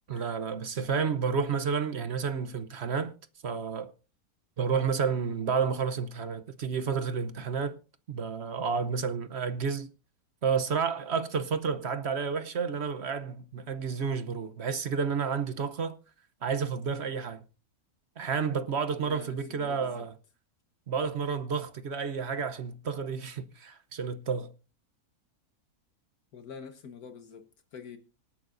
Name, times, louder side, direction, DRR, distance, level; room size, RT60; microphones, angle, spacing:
voice 1, 0.1-3.1 3.4-3.9 4.6-7.8 8.1-9.9 10.4-16.0 16.4-17.4 18.2-20.1 20.9-24.5, right 6 dB, 50° right, 1.0 m, -30 dB
voice 2, 18.9-20.1 26.3-28.0, left 6 dB, 75° left, 1.7 m, -46 dB
25.5 x 8.7 x 2.6 m
omnidirectional pair, 1.6 m